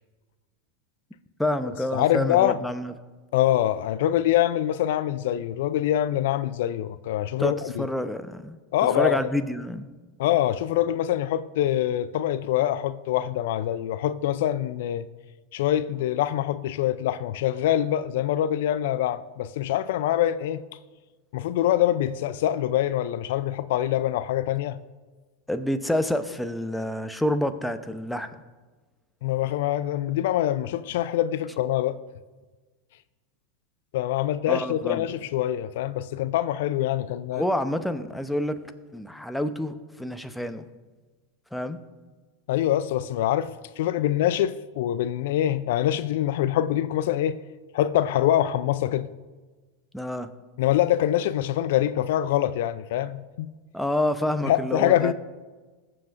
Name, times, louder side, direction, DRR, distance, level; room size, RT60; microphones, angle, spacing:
voice 1, 1.4-2.9 7.4-8.6 8.9-9.9 25.5-28.4 34.5-35.1 37.3-38.6 38.9-40.7 41.5-41.8 49.9-50.3 53.7-55.1, left 1 dB, 5° left, 0.8 m, -28 dB
voice 2, 1.9-2.6 3.3-7.9 8.7-9.2 10.2-15.0 15.5-20.6 21.3-24.8 29.2-32.0 33.9-37.4 42.5-43.5 43.8-47.4 47.7-49.1 50.6-53.5 54.5-55.1, left 12 dB, 70° left, 0.4 m, -24 dB
20.0 x 7.7 x 2.6 m
hypercardioid pair, 95°, 0 cm